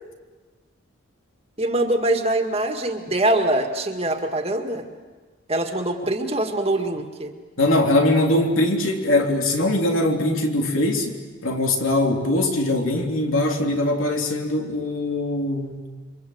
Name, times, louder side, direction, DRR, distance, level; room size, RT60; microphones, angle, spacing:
voice 1, 1.6-4.8 5.5-7.3, right 1 dB, 30° right, 4 dB, 2.0 m, -23 dB
voice 2, 7.6-11.2 11.4-15.8, left 1 dB, 75° left, 2 dB, 3.3 m, -21 dB
28.5 x 24.5 x 8.0 m, 1.4 s
head